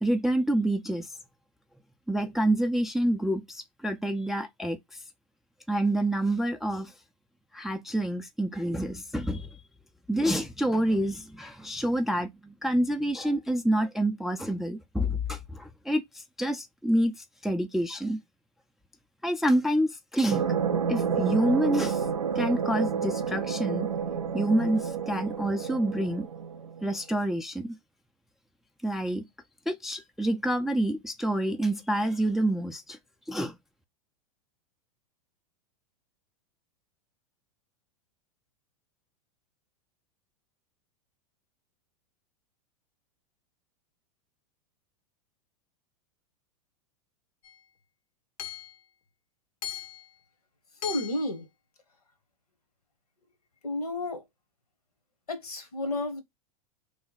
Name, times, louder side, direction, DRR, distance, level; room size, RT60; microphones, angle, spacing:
voice 1, 0.0-1.1 2.1-4.8 5.7-6.9 7.5-9.5 10.1-17.1 17.4-18.2 19.2-20.5 20.9-22.0 22.4-23.9 24.3-26.3 26.8-27.8 28.8-29.2 29.7-33.0 33.3-33.5, right 1 dB, ahead, 0.3 m, -27 dB
sound 1, 20.3-27.0, right 7 dB, 85° right, 0.5 m, -30 dB
Hammer / Chink clink, 47.4-47.6 48.4-48.8 49.6-50.1 50.8-51.3, left 10 dB, 70° left, 0.7 m, -38 dB
voice 2, 50.8-51.5 53.6-54.2 55.3-56.2, left 2 dB, 85° left, 1.1 m, -31 dB
3.1 x 2.1 x 4.0 m
hypercardioid pair, 95°, 19 cm